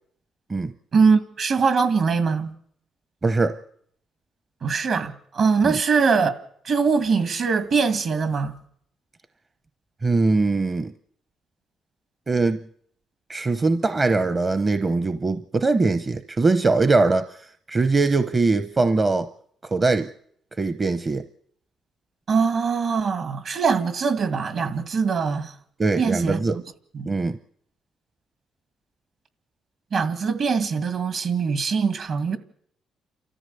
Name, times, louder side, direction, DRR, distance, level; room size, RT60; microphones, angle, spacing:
voice 1, 0.9-2.5 4.6-6.3 6.6-8.6 22.3-25.5 26.0-26.6 26.9-27.1 29.9-32.4, right 5 dB, 60° right, 1.9 m, -22 dB
voice 2, 3.2-3.6 5.6-5.8 10.0-10.9 12.3-12.6 13.3-17.4 17.7-19.3 19.6-20.1 20.6-21.2 25.8-26.6 27.1-27.4, right 3 dB, 30° right, 0.7 m, -21 dB
29.5 x 14.0 x 6.9 m
cardioid pair, 90°, 0 cm